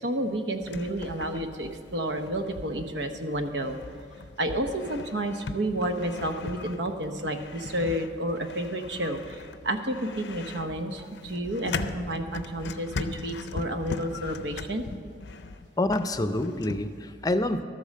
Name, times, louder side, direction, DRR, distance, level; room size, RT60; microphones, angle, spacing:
voice 1, 0.0-3.8 4.4-14.8, right 1 dB, 90° right, 7 dB, 0.9 m, -30 dB
sound 1, 0.6-16.9, left 3 dB, 85° left, 0.5 m, -39 dB
voice 2, 15.8-17.6, left 1 dB, 20° left, 10 dB, 0.5 m, -27 dB
12.5 x 8.5 x 6.5 m, 2.1 s
head